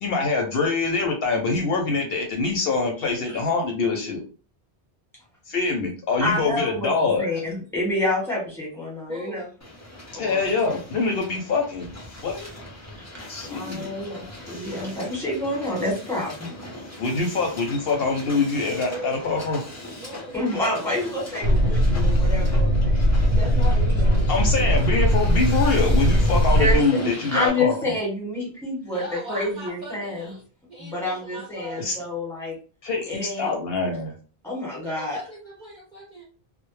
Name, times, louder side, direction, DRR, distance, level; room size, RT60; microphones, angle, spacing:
voice 1, 0.0-4.2 5.5-7.3 10.2-11.9 12.2-12.5 13.3-13.9 17.0-19.6 24.3-27.9 31.8-31.9 32.8-34.1, left 3 dB, 65° left, 2 dB, 0.7 m, -24 dB
voice 2, 6.2-6.9 7.2-9.5 10.1-10.5 13.4-16.5 20.3-22.7 23.3-24.3 26.5-30.3 30.8-32.6 33.1-33.5 33.8-33.9 34.4-35.2, left 1 dB, ahead, -5 dB, 0.9 m, -28 dB
voice 3, 9.1-9.4 18.9-19.2 20.0-20.4 28.9-30.4 30.7-31.9 34.8-36.2, right 2 dB, 50° right, -2 dB, 0.7 m, -39 dB
Hiss, 9.6-27.5, left 1 dB, 25° left, 0.3 m, -40 dB
sound 1, 21.4-26.8, equal, 75° right, 0.9 m, -19 dB
2.1 x 2.0 x 3.0 m, 0.37 s
omnidirectional pair, 1.2 m